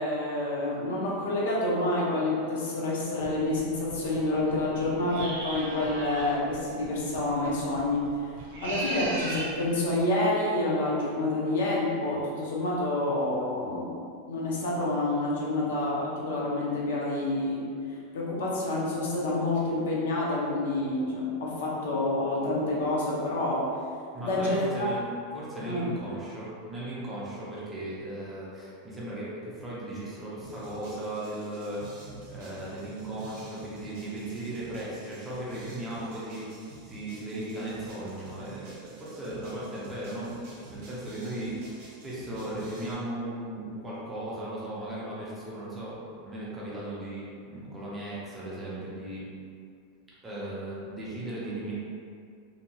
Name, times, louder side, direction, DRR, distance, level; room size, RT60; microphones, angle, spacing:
voice 1, 0.0-8.0 8.6-14.0 14.3-17.6 17.9-23.7 24.2-24.9 25.6-25.8, left 2 dB, 75° left, -5 dB, 0.7 m, -28 dB
sound 1, 3.0-10.0, right 1 dB, 35° left, 0.6 m, -49 dB
sound 2, 5.1-6.3 8.4-9.5, right 2 dB, 85° right, 0.5 m, -35 dB
voice 2, 24.1-25.0 25.3-36.5 36.8-40.3 40.7-41.8 42.0-46.0 46.2-49.2 50.2-51.7, right 1 dB, 10° right, -8 dB, 0.4 m, -37 dB
sound 3, 30.4-42.9, right 2 dB, 50° right, 0.7 m, -49 dB
2.6 x 2.2 x 2.7 m, 2.3 s
supercardioid pair, 180°, 0 cm